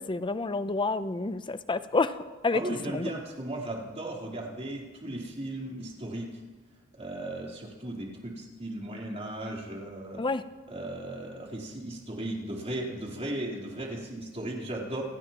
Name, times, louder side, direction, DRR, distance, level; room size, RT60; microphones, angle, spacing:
voice 1, 0.0-3.1 10.2-10.4, left 3 dB, 25° left, 12 dB, 0.6 m, -29 dB
voice 2, 2.5-6.4 7.0-10.2 10.7-15.0, right 1 dB, 30° right, -2 dB, 3.6 m, -36 dB
28.0 x 17.0 x 3.0 m, 1.2 s
head